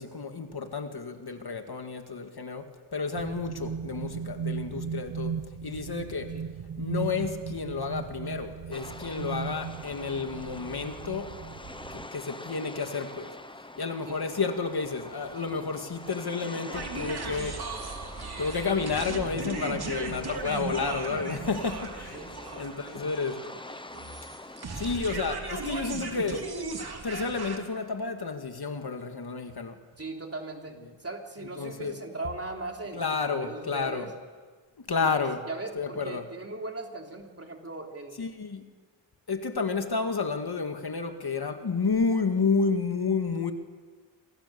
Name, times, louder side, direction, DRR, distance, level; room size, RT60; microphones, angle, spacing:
voice 1, 0.0-6.4 6.8-11.4 11.9-13.3 13.8-17.7 18.4-22.2 22.6-23.5 24.7-26.6 27.0-29.8 31.6-31.9 32.9-34.1 34.8-35.4 35.8-36.3 38.2-38.7 39.3-43.5, left 4 dB, 55° left, 2.1 m, -31 dB
sound 1, 3.1-12.1, right 6 dB, 85° right, 1.4 m, -37 dB
sound 2, 8.7-24.7, left 2 dB, 10° left, 0.9 m, -44 dB
voice 2, 14.1-14.4 22.1-23.0 30.0-34.1 34.9-35.2 35.4-38.3, right 2 dB, 30° right, 3.3 m, -39 dB
sound 3, 16.7-27.6, right 4 dB, 55° right, 3.2 m, -37 dB
29.5 x 26.5 x 7.0 m
wide cardioid pair, 130°, 46 cm